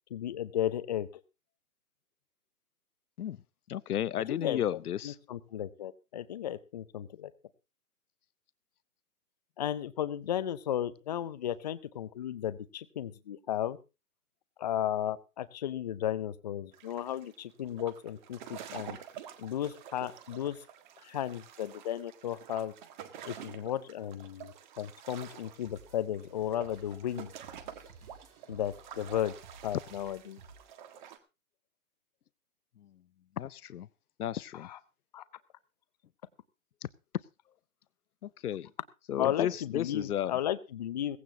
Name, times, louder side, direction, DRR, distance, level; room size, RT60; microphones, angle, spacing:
voice 1, 0.1-1.1 4.3-7.3 9.6-13.8 14.6-19.0 19.4-20.6 21.0-22.7 23.2-27.3 28.5-29.3 29.6-30.4 34.5-34.8 35.1-35.2 39.2-41.2, left 11 dB, 30° left, 14 dB, 0.6 m, -34 dB
voice 2, 3.7-5.1 33.4-33.9 34.2-34.7 38.2-38.7 39.1-40.3, left 10 dB, 85° left, 19 dB, 0.7 m, -33 dB
sound 1, 16.7-31.2, right 9 dB, 30° right, 1.6 m, -49 dB
sound 2, 25.6-30.6, right 4 dB, 75° right, 3.7 m, -55 dB
17.0 x 15.5 x 2.8 m, 0.28 s
hypercardioid pair, 155°, 43 cm